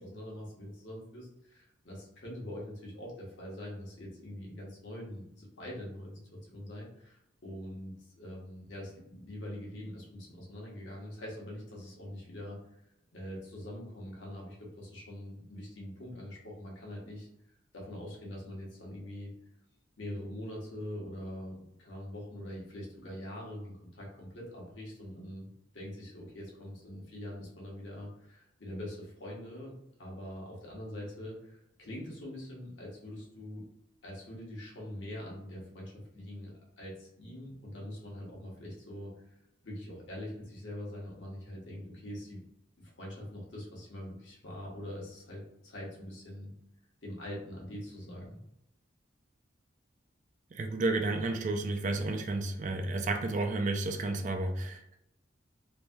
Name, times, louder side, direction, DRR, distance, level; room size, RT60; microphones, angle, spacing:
voice 1, 0.0-12.6 13.1-17.3 17.7-19.3 20.0-29.7 30.0-33.6 34.0-39.1 39.6-42.4 42.8-46.5 47.0-48.4, left 1 dB, 75° left, -3 dB, 1.1 m, -43 dB
voice 2, 50.5-55.0, right 2 dB, 40° right, 5 dB, 0.3 m, -31 dB
3.1 x 2.6 x 2.2 m, 0.79 s
head